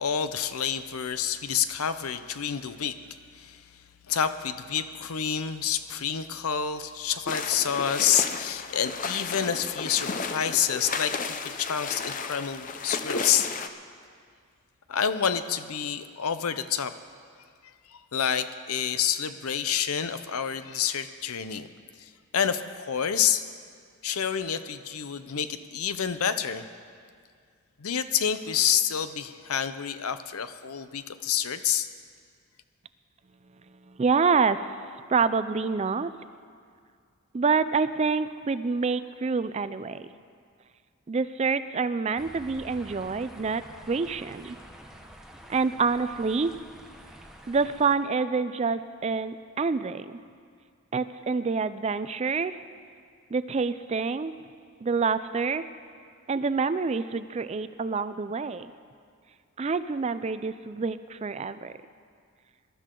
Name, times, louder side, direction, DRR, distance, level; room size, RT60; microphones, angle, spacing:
voice 1, 0.0-3.0 3.3-3.6 4.1-13.5 14.9-16.9 17.9-21.7 22.0-23.4 24.0-26.7 27.8-31.9, left 8 dB, 80° left, 11 dB, 0.7 m, -28 dB
sound 1, 7.3-13.7, left 4 dB, 35° left, 0.5 m, -33 dB
voice 2, 33.9-34.7 35.1-36.1 37.3-40.1 41.1-44.6 45.5-46.5 47.5-50.2 50.9-52.6 53.3-54.3 54.8-55.6 56.3-58.7 59.6-61.7, right 4 dB, 30° right, 13 dB, 0.3 m, -27 dB
sound 2, 42.2-47.9, equal, ahead, 0.8 m, -48 dB
21.5 x 12.5 x 3.8 m, 2.2 s
head